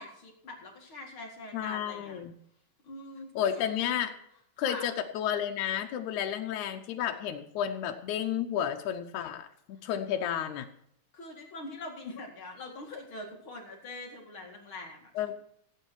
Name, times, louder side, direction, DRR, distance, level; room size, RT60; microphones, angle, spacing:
voice 1, 0.0-2.2 2.8-3.7 4.6-4.9 11.1-15.3, left 2 dB, 45° left, 0 dB, 2.8 m, -43 dB
voice 2, 1.5-2.3 3.4-4.1 4.6-10.7 15.2-15.3, left 9 dB, 85° left, 4 dB, 2.3 m, -32 dB
15.5 x 9.1 x 4.6 m, 0.73 s
omnidirectional pair, 3.3 m